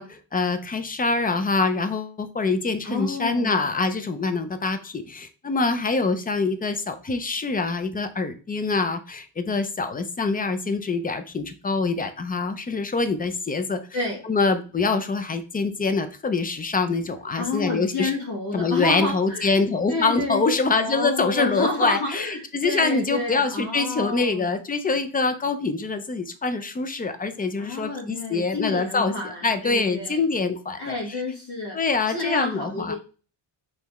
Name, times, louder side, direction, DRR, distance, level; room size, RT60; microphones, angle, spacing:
voice 1, 0.0-13.8 14.2-18.1 18.5-31.2 31.7-32.9, left 4 dB, 20° left, 9 dB, 0.3 m, -25 dB
voice 2, 2.8-3.6 13.9-14.2 17.4-19.5 19.9-24.4 27.6-30.2 30.8-31.8 32.1-33.0, left 2 dB, 55° left, -3 dB, 1.6 m, -29 dB
5.6 x 3.2 x 3.0 m, 0.35 s
cardioid pair, 145°, 46 cm